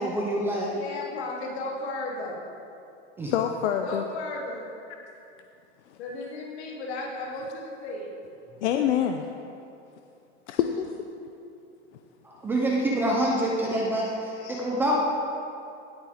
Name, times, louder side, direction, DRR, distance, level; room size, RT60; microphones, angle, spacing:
voice 1, 0.0-0.7 3.2-3.3 12.2-14.9, right 1 dB, 5° right, -3 dB, 0.4 m, -26 dB
voice 2, 0.6-2.4 3.8-4.7 6.0-8.1, left 2 dB, 70° left, -3 dB, 2.9 m, -35 dB
voice 3, 3.3-4.0 5.9-6.0 8.6-9.3 10.5-10.9 14.4-14.6, left 9 dB, 85° left, 5 dB, 0.7 m, -26 dB
17.0 x 8.4 x 3.5 m, 2.6 s
supercardioid pair, 175°, 34 cm